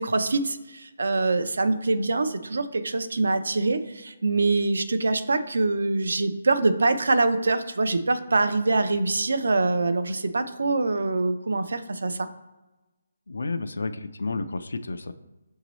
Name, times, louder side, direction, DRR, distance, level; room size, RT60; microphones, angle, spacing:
voice 1, 0.0-12.3, right 3 dB, 80° right, 9 dB, 0.5 m, -24 dB
voice 2, 13.3-15.1, left 3 dB, 85° left, 10 dB, 0.3 m, -31 dB
6.0 x 2.7 x 3.0 m, 1.1 s
hypercardioid pair, 175°, 0 cm